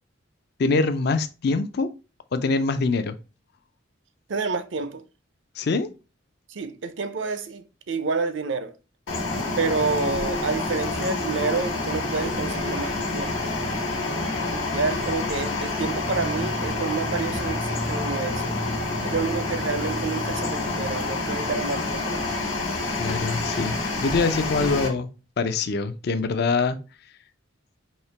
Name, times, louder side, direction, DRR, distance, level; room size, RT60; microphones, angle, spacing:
voice 1, 0.6-1.9 2.3-3.2 5.6-5.9 23.0-25.1 25.4-26.8, left 4 dB, 55° left, 0.4 m, -24 dB
voice 2, 4.3-5.0 6.5-8.7 9.6-13.5 14.5-18.6 19.0-22.3, right 4 dB, 70° right, 0.5 m, -29 dB
sound 1, 9.1-24.9, left 2 dB, 90° left, 1.3 m, -28 dB
4.3 x 2.8 x 3.3 m
head